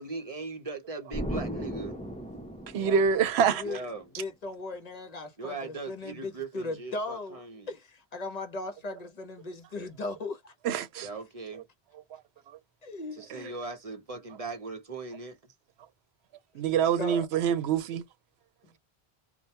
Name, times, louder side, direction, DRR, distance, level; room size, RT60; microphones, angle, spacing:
voice 1, 0.0-2.0 3.6-4.1 5.4-7.7 11.0-11.6 13.1-15.4, right 3 dB, 40° right, 0.7 m, -39 dB
Explosion, 1.1-3.8, equal, 10° left, 0.4 m, -36 dB
voice 2, 2.7-3.6 10.6-11.1 16.6-18.0, right 7 dB, 90° right, 0.8 m, -25 dB
voice 3, 3.4-3.8 4.2-7.4 7.7-10.5 12.8-13.5 17.0-17.3, left 2 dB, 45° left, 0.7 m, -38 dB
2.2 x 2.1 x 2.7 m
omnidirectional pair, 1.1 m